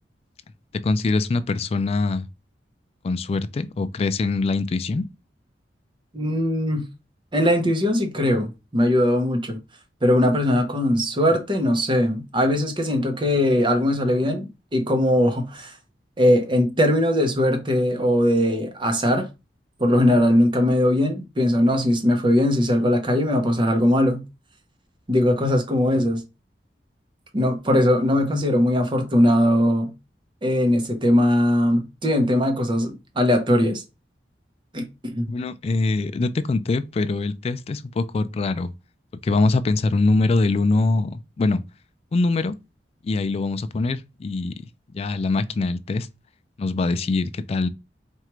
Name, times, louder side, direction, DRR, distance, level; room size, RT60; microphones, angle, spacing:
voice 1, 0.8-2.3 3.0-5.1 35.3-38.7 39.2-41.6 42.1-42.5 43.0-44.5 44.9-46.1 46.6-47.7, left 3 dB, 35° left, 0.3 m, -23 dB
voice 2, 6.1-6.9 7.3-9.6 10.0-15.7 16.2-19.3 19.8-24.2 25.1-26.2 27.3-29.9 30.4-33.8 34.7-35.3, left 1 dB, 30° right, 0.8 m, -20 dB
4.5 x 2.4 x 3.0 m
head